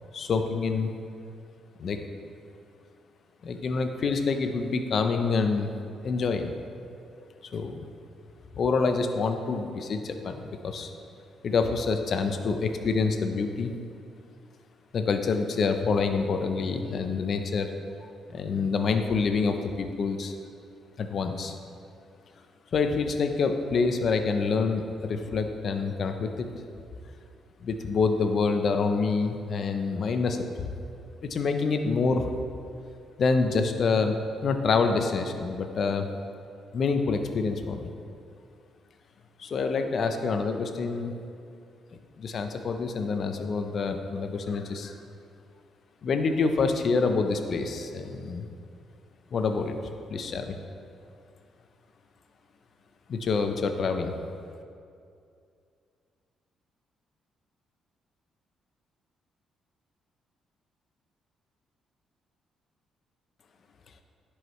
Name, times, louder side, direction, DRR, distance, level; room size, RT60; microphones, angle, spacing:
voice 1, 0.1-0.9 1.8-2.0 3.4-5.7 6.0-6.5 7.5-7.8 8.6-10.9 11.4-13.7 14.9-17.7 18.0-20.3 21.0-21.6 22.7-26.5 27.6-30.7 31.3-32.3 33.2-34.1 34.4-36.1 36.7-37.9 39.4-41.1 42.2-45.0 46.0-48.5 49.3-49.8 50.1-50.6 53.1-54.2, left 4 dB, 55° left, 6 dB, 0.6 m, -27 dB
10.5 x 4.8 x 3.1 m, 2.4 s
cardioid pair, 90°, 0 cm